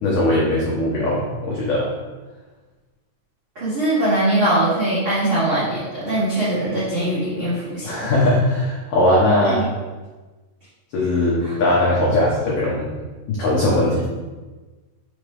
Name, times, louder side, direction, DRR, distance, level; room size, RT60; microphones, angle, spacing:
voice 1, 0.0-1.9 7.8-9.6 10.9-12.9 13.3-14.1, left 1 dB, 80° left, -5 dB, 1.9 m, -19 dB
voice 2, 3.5-7.9 9.4-9.6 11.4-11.5, right 1 dB, 85° right, -12 dB, 1.1 m, -21 dB
6.4 x 3.3 x 4.8 m, 1.3 s
omnidirectional pair, 5.3 m